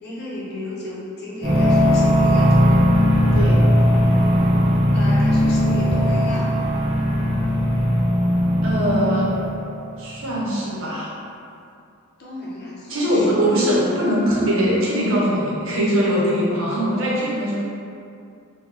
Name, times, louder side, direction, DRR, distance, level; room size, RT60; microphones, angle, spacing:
voice 1, 0.0-2.8 4.9-6.5 12.2-13.4, left 1 dB, 50° left, -6 dB, 0.7 m, -33 dB
sound 1, 1.4-9.6, equal, 25° right, 0.7 m, -18 dB
voice 2, 8.6-9.3 10.0-11.2 12.9-17.6, equal, 65° right, -6 dB, 0.8 m, -21 dB
3.6 x 2.2 x 3.2 m, 2.5 s
head